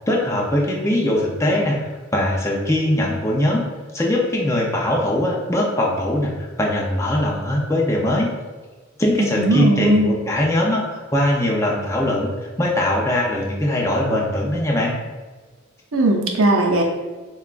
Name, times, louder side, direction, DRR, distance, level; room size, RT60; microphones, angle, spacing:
voice 1, 0.1-3.6 3.9-8.3 9.0-12.3 12.6-14.9, left 1 dB, 15° left, -2 dB, 0.6 m, -21 dB
voice 2, 9.2-10.2 15.9-16.8, right 2 dB, 90° right, 1 dB, 0.6 m, -18 dB
6.8 x 2.3 x 2.5 m, 1.3 s
head